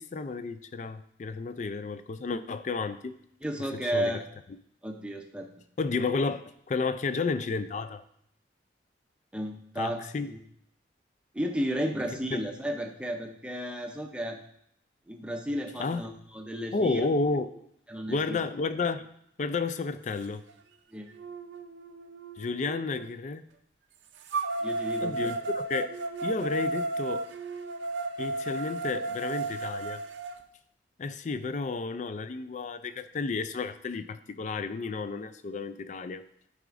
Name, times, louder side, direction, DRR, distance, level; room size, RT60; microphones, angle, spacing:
voice 1, 0.0-3.1 3.8-4.2 5.8-8.0 9.8-10.3 12.3-12.4 15.8-16.1 16.7-17.5 18.1-19.1 19.4-20.4 22.4-23.4 25.0-26.0 26.2-27.2 28.2-30.0 31.0-36.2, left 4 dB, 40° left, 11 dB, 0.3 m, -31 dB
voice 2, 3.4-4.2 4.8-5.5 9.3-10.0 10.3-10.4 11.3-14.4 15.1-17.1 17.9-18.4 20.9-21.1 24.6-25.3, equal, 5° right, 3 dB, 0.6 m, -33 dB
sound 1, 20.5-20.6 21.2-23.1 24.3-30.3, right 2 dB, 75° right, 0.5 m, -33 dB
11.0 x 4.8 x 2.5 m, 0.71 s
head